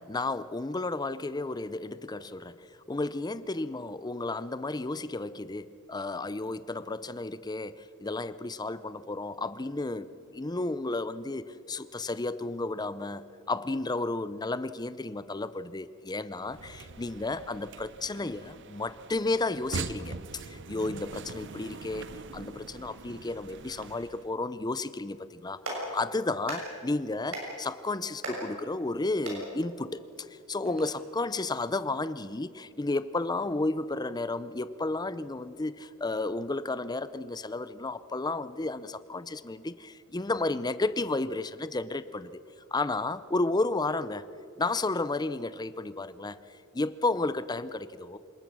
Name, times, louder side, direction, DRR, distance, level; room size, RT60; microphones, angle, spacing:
voice 1, 0.0-42.4 42.7-44.3 44.6-48.2, left 2 dB, 20° left, 15 dB, 0.5 m, -32 dB
sound 1, 16.4-24.3, right 4 dB, 60° right, 0.8 m, -42 dB
Clapping, 25.3-30.8, right 1 dB, 75° right, 6.8 m, -41 dB
27.5 x 19.5 x 6.2 m, 2.6 s
head